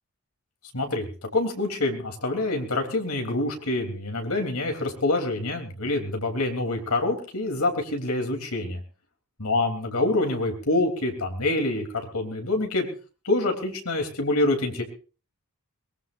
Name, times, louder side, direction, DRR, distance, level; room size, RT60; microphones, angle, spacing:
voice 1, 0.7-1.1 1.3-8.8 9.4-12.9 13.2-14.8, left 2 dB, 70° left, 4 dB, 3.6 m, -26 dB
22.0 x 20.0 x 2.7 m, 0.37 s
head